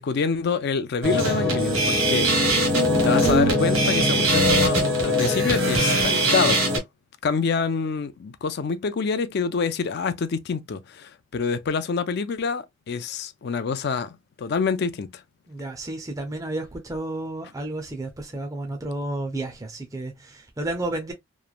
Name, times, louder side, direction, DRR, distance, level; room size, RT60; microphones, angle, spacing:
voice 1, 0.0-2.7 3.0-6.7 7.2-15.2, left 5 dB, 50° left, 0.4 m, -26 dB
sound 1, 1.0-6.8, equal, 80° right, 1.3 m, -21 dB
voice 2, 15.5-21.1, right 2 dB, 15° right, 0.5 m, -32 dB
3.1 x 2.1 x 2.3 m
head